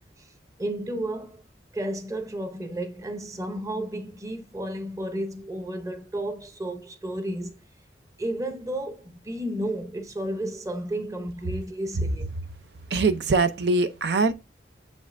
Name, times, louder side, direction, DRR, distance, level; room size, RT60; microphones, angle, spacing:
voice 1, 0.6-1.4 1.7-7.6 8.2-12.3, right 1 dB, 20° right, 0.7 m, -32 dB
voice 2, 12.9-14.3, right 3 dB, 70° right, 0.5 m, -22 dB
7.1 x 5.2 x 2.6 m
head